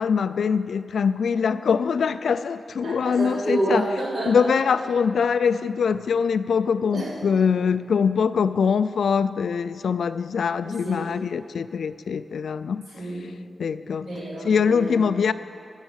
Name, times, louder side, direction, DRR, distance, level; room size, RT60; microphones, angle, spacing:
voice 1, 0.0-3.8 4.3-12.9 13.6-14.1 14.4-15.3, left 6 dB, 75° left, 12 dB, 0.3 m, -23 dB
voice 2, 2.8-4.5 6.8-7.1 10.6-11.1 12.9-13.3 14.0-15.0, right 1 dB, 60° right, -5 dB, 3.1 m, -29 dB
20.0 x 7.3 x 7.3 m, 2.4 s
wide cardioid pair, 165°, 0 cm